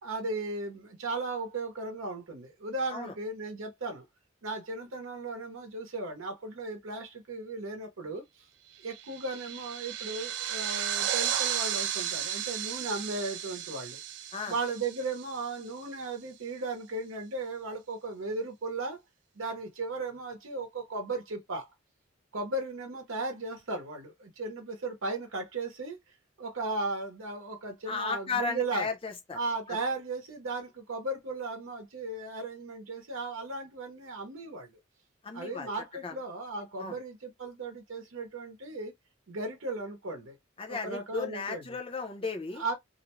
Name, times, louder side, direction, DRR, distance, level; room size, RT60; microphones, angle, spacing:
voice 1, 0.0-4.0 4.4-8.5 8.8-14.0 14.5-19.0 19.4-21.7 22.3-26.0 26.4-28.9 29.3-34.7 35.3-38.9 39.3-40.4 40.7-41.6 42.6-42.7, right 3 dB, 80° right, 0.7 m, -36 dB
sound 1, 8.8-15.7, right 10 dB, 55° right, 0.3 m, -34 dB
voice 2, 27.9-29.4 29.7-29.8 35.2-35.7 36.0-36.1 36.8-37.0 40.6-42.6, left 4 dB, 25° left, 0.5 m, -35 dB
2.5 x 2.1 x 2.9 m
head